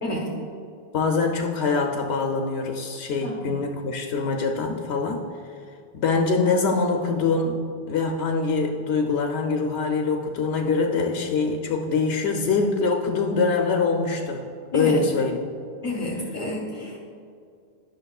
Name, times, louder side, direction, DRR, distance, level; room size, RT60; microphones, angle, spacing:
voice 1, 0.9-5.2 5.9-14.4 14.7-15.4, left 4 dB, 75° left, 2 dB, 0.8 m, -24 dB
voice 2, 15.8-17.0, left 1 dB, 45° left, -4 dB, 1.2 m, -29 dB
11.0 x 6.0 x 2.3 m, 2.3 s
omnidirectional pair, 1.1 m